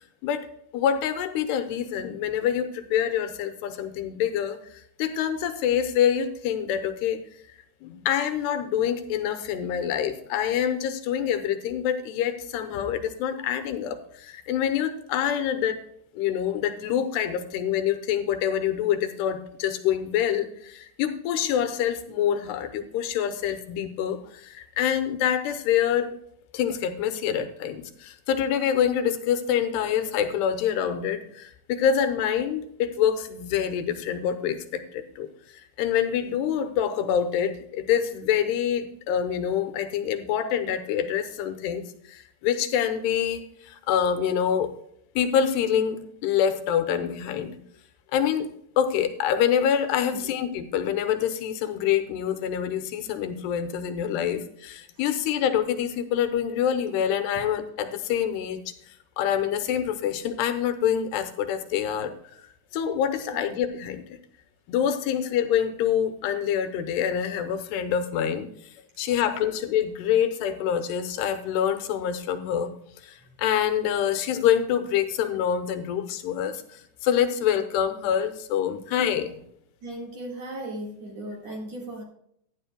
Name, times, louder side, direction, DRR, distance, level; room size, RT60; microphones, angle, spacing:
voice 1, 0.7-7.2 7.8-15.8 16.2-26.1 26.5-44.7 45.2-47.6 48.1-48.5 48.8-62.1 62.7-64.2 64.7-72.7 73.0-79.4, left 9 dB, 85° left, 8 dB, 3.0 m, -26 dB
voice 2, 79.8-82.0, right 1 dB, 50° right, 0 dB, 2.5 m, -37 dB
16.0 x 11.0 x 2.3 m, 0.70 s
omnidirectional pair, 4.7 m